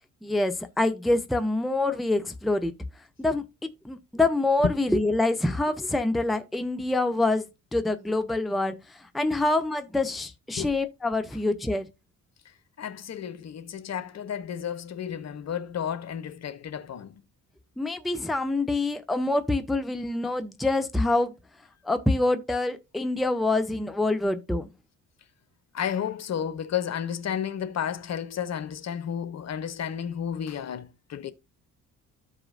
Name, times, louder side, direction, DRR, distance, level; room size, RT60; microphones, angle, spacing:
voice 1, 0.2-2.7 3.2-7.5 7.7-8.7 9.1-11.9 17.8-21.3 21.8-24.7, left 2 dB, ahead, 0.6 m, -26 dB
voice 2, 12.8-17.1 25.7-31.3, left 8 dB, 35° left, 0.7 m, -32 dB
13.5 x 4.9 x 2.5 m
figure-of-eight pair, 45°, 45 cm